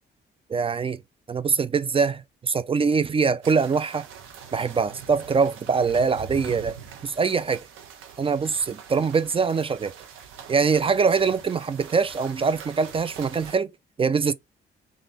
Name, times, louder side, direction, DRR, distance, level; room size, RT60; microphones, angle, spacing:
voice 1, 0.5-1.0 1.3-4.1 4.5-7.6 8.2-9.9 10.5-13.7 14.0-14.3, right 5 dB, 30° right, 0.4 m, -23 dB
sound 1, 3.4-13.6, right 7 dB, 90° right, 1.0 m, -43 dB
3.4 x 2.5 x 4.0 m
cardioid pair, 90°, 20 cm